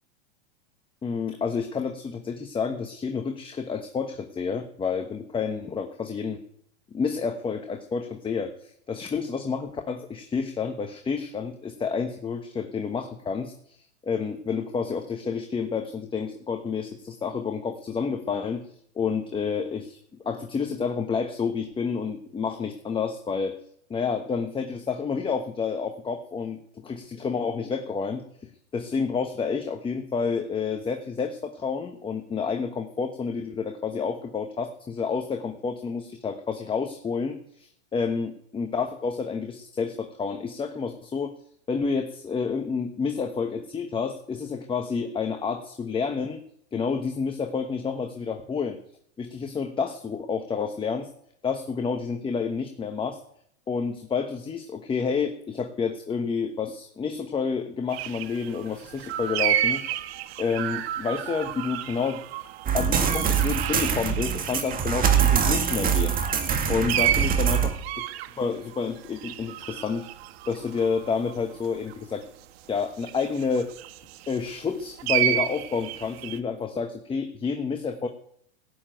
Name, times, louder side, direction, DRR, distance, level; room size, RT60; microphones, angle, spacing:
voice 1, 1.0-6.4 6.9-13.8 14.0-18.7 18.9-20.0 20.2-23.6 23.9-28.2 28.7-41.3 41.7-46.4 46.7-48.8 49.2-51.1 51.4-53.2 53.7-60.0 60.4-62.2 62.7-67.8 68.4-70.1 70.5-72.2 72.7-73.7 74.3-78.1, left 5 dB, 15° left, 5 dB, 1.2 m, -29 dB
sound 1, 57.9-64.8 65.1-71.9 73.0-74.6 75.0-76.4, right 12 dB, 60° right, 1.2 m, -31 dB
sound 2, 62.7-67.7, right 8 dB, 25° right, 2.1 m, -24 dB
16.5 x 7.3 x 9.2 m, 0.68 s
hypercardioid pair, 125°, 36 cm